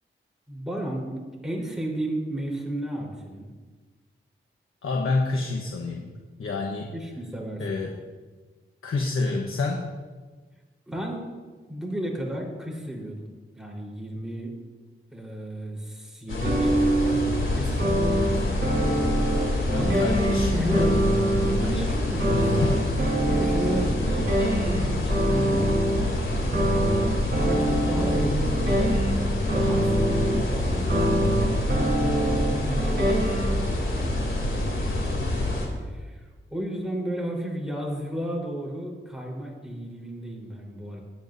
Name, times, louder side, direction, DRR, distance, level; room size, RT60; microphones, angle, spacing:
voice 1, 0.5-3.5 6.9-7.8 10.9-11.2 11.7-13.3 13.5-14.5 15.1-20.1 20.5-21.0 21.5-22.6 23.3-26.5 26.9-29.2 29.5-31.2 31.6-33.3 33.6-35.3 35.6-41.0, right 1 dB, ahead, -3 dB, 4.2 m, -33 dB
voice 2, 4.8-6.1 6.4-6.9 7.6-7.9 8.8-9.8 19.7-20.9 22.3-22.8, left 3 dB, 85° left, 0 dB, 1.1 m, -28 dB
sound 1, 16.3-35.7, left 1 dB, 70° left, 2.9 m, -27 dB
sound 2, 16.4-17.4 17.8-21.7 22.2-26.1 26.5-30.5 30.9-33.6, right 1 dB, 55° right, 3.8 m, -25 dB
20.5 x 9.3 x 2.7 m, 1.4 s
cardioid pair, 65°, 21 cm